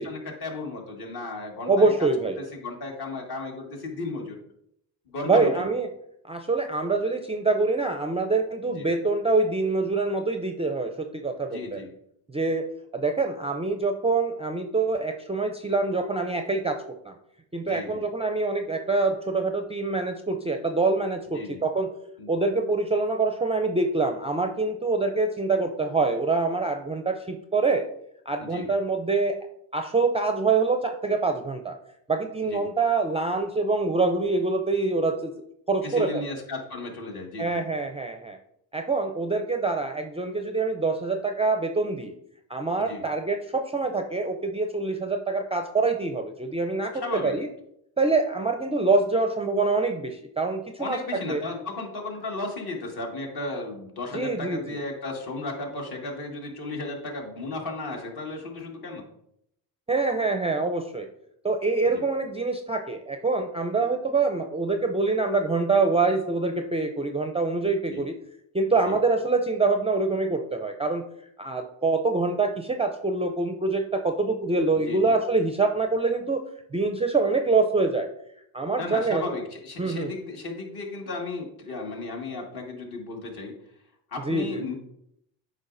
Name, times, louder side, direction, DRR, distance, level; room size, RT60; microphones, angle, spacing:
voice 1, 0.0-2.1 2.5-4.4 5.1-5.7 8.7-8.9 11.5-11.9 17.6-18.0 21.3-21.6 22.2-22.3 28.4-28.7 32.4-32.7 35.8-37.6 42.8-43.0 46.9-47.4 50.8-59.0 61.9-62.1 67.9-68.0 68.8-69.0 74.8-75.1 78.8-83.5 84.1-84.7, left 2 dB, 50° left, 1 dB, 1.9 m, -35 dB
voice 2, 1.7-2.4 5.3-5.9 6.3-11.8 12.3-12.6 12.9-16.8 17.0-17.1 17.5-21.9 22.3-27.9 28.3-29.4 29.7-31.8 32.1-35.3 35.7-36.2 37.4-38.4 38.7-42.2 42.5-46.9 47.2-47.5 48.0-51.4 54.1-54.8 59.9-61.1 61.4-68.2 68.5-71.0 71.4-76.4 76.7-78.1 78.5-79.3 79.8-80.1 84.2-84.7, right 3 dB, 15° right, 5 dB, 0.4 m, -25 dB
8.1 x 5.0 x 2.6 m, 0.75 s
supercardioid pair, 85°, 47 cm